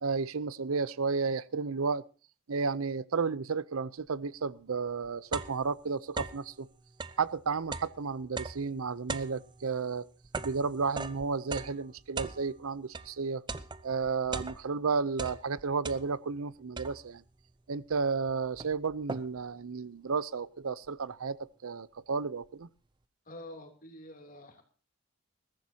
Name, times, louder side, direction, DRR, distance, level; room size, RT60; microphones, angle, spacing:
voice 1, 0.0-2.0 2.5-6.7 7.2-10.1 10.4-13.4 13.8-17.2 17.7-22.7, right 5 dB, 80° right, 19 dB, 0.6 m, -32 dB
sound 1, 4.9-6.5 6.9-13.1 13.5-14.8 15.1-16.4 16.8-17.3 17.9-18.0 18.3-19.5, right 4 dB, 20° right, 0.6 m, -40 dB
voice 2, 23.3-24.6, left 1 dB, 40° left, 4 dB, 3.0 m, -47 dB
21.5 x 14.5 x 2.8 m, 0.36 s
head